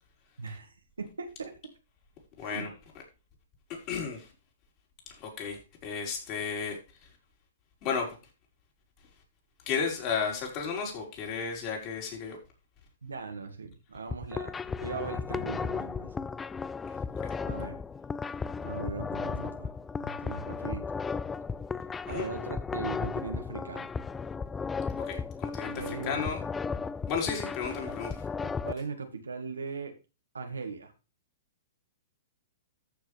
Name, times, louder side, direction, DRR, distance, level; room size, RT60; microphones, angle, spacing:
voice 1, 0.4-1.5 2.4-2.7 13.0-16.3 17.4-17.8 18.6-19.7 20.0-20.9 22.1-23.9 25.7-26.3 28.4-29.9 30.3-30.9, right 4 dB, 90° right, 1.9 m, -39 dB
voice 2, 2.4-2.7 3.7-4.3 5.1-6.8 7.8-8.2 9.7-12.4 17.2-17.3 22.1-22.3 25.0-26.4 27.1-28.2, left 6 dB, 40° left, 4.8 m, -33 dB
sound 1, 14.0-28.7, left 5 dB, 15° left, 0.4 m, -35 dB
14.0 x 6.3 x 3.5 m
hypercardioid pair, 120°, 0 cm